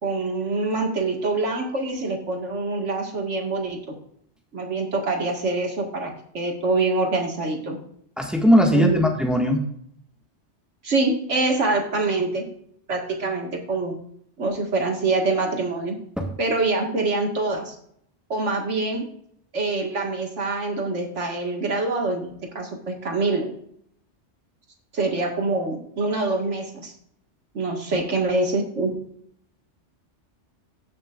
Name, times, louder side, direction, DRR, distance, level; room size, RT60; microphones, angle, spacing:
voice 1, 0.0-4.0 4.5-7.8 8.7-9.1 10.8-12.5 12.9-13.9 14.4-16.0 16.4-17.8 18.3-19.1 19.5-23.5 24.9-26.9 27.5-29.0, right 3 dB, 80° right, 2 dB, 2.2 m, -25 dB
voice 2, 8.2-9.6 16.2-16.3 27.9-28.0, equal, ahead, 0 dB, 1.7 m, -19 dB
17.5 x 6.5 x 2.5 m, 0.69 s
omnidirectional pair, 1.2 m